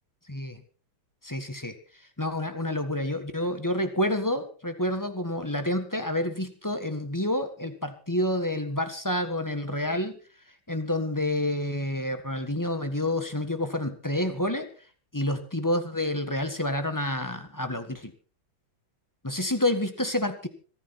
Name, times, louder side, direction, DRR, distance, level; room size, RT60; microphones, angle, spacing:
voice 1, 0.3-0.6 1.2-1.8 2.2-10.2 10.7-14.7 15.1-18.1 19.2-20.5, left 1 dB, 10° left, 8 dB, 1.3 m, -28 dB
26.0 x 10.0 x 4.3 m, 0.37 s
omnidirectional pair, 2.4 m